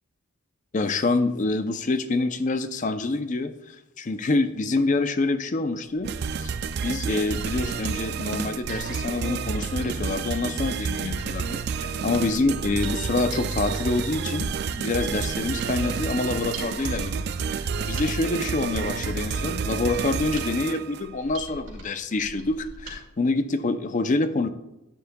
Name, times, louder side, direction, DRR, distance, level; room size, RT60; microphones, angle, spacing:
voice 1, 0.7-6.1 6.4-6.5 6.8-14.5 14.8-17.3 17.5-24.5, left 3 dB, 40° left, 11 dB, 0.5 m, -26 dB
Mechanisms, 5.9-23.0 23.3-23.4, right 1 dB, 70° right, 2.2 m, -43 dB
sound 1, 6.0-21.1, right 6 dB, 55° right, 0.4 m, -30 dB
10.0 x 9.5 x 2.3 m, 0.92 s
head